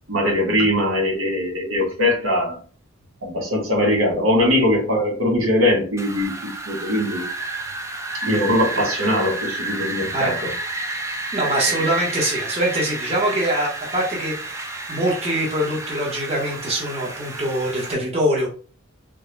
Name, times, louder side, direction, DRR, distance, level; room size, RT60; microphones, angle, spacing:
voice 1, 0.1-2.6 3.2-7.2 8.2-10.5, left 1 dB, 75° right, -1 dB, 1.1 m, -21 dB
Wind, 6.0-17.9, right 2 dB, 15° right, 0.4 m, -30 dB
voice 2, 10.1-10.5 11.3-18.5, right 1 dB, 30° right, -3 dB, 0.9 m, -23 dB
3.5 x 2.1 x 3.1 m, 0.39 s
head